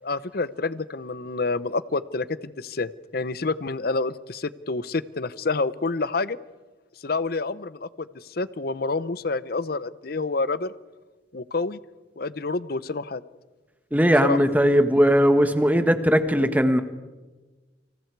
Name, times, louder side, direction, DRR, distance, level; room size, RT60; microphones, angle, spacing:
voice 1, 0.0-6.4 7.0-10.7 11.3-11.8 12.2-13.2 14.2-14.4, left 3 dB, 55° left, 17 dB, 0.8 m, -28 dB
voice 2, 13.9-16.8, equal, 10° right, 9 dB, 1.4 m, -19 dB
29.5 x 25.5 x 4.7 m, 1.2 s
head